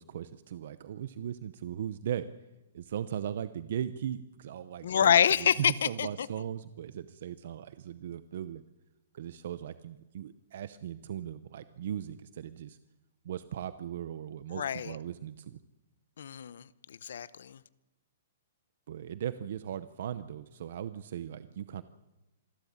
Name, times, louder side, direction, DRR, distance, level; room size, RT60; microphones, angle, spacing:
voice 1, 0.0-2.3 2.7-8.6 9.1-12.8 13.2-15.6 18.9-21.8, right 10 dB, 50° right, 0.7 m, -38 dB
voice 2, 4.8-6.3 14.5-15.0 16.2-17.6, left 8 dB, 65° left, 0.8 m, -27 dB
26.5 x 12.0 x 8.7 m
hypercardioid pair, 175°, 0 cm